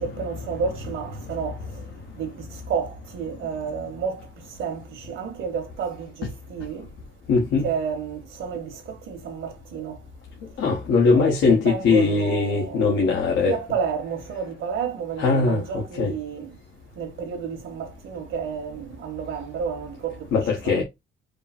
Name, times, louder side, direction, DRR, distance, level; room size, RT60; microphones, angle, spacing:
voice 1, 0.0-1.6 2.1-4.2 4.5-6.9 7.6-10.0 11.1-16.5 17.0-20.4 20.6-20.8, right 6 dB, 80° right, 1.5 m, -31 dB
voice 2, 7.3-7.7 10.6-13.5 15.2-16.1 20.3-20.8, left 4 dB, 85° left, 1.2 m, -21 dB
5.0 x 2.0 x 4.2 m
cardioid pair, 90°, 20 cm